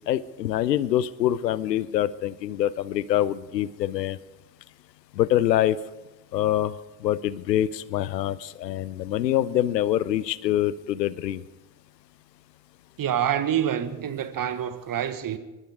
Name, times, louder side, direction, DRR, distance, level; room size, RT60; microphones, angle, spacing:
voice 1, 0.1-4.2 5.2-5.8 6.3-6.7 7.0-11.4, left 12 dB, 90° left, 0.6 m, -25 dB
voice 2, 13.0-15.4, right 9 dB, 45° right, 1.4 m, -27 dB
23.0 x 12.5 x 4.8 m
figure-of-eight pair, 50°, 49 cm